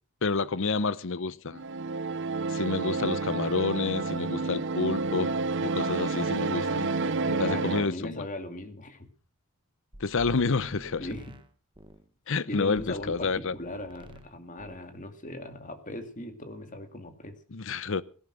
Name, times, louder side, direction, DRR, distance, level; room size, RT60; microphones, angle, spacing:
voice 1, 0.2-1.6 2.5-5.3 5.6-6.9 7.4-8.3 10.0-11.1 12.3-13.5 17.5-18.0, left 4 dB, 60° left, 0.8 m, -29 dB
sound 1, 1.5-7.9, right 3 dB, 55° right, 0.7 m, -29 dB
voice 2, 7.2-9.1 11.0-11.4 12.5-17.3, left 1 dB, 35° left, 2.3 m, -39 dB
sound 2, 9.9-12.1 12.8-14.3 14.6-14.9, equal, 20° right, 1.3 m, -48 dB
17.0 x 11.0 x 6.3 m
head